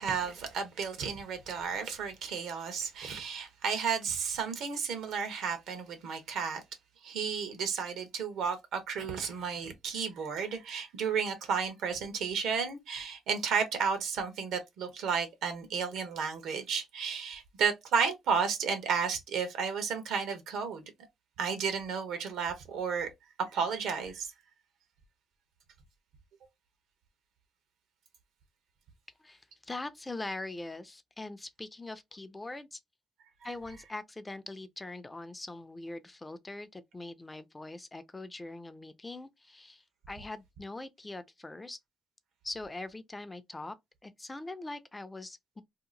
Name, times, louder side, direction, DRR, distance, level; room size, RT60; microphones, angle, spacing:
voice 1, 0.0-6.6 7.0-20.8 21.4-23.1 23.4-24.3 33.4-33.5, right 6 dB, 80° right, 1.0 m, -32 dB
voice 2, 29.2-32.8 33.4-41.8 42.4-43.8 44.0-45.6, left 2 dB, 15° left, 0.5 m, -42 dB
2.8 x 2.4 x 3.8 m
cardioid pair, 90°, 0 cm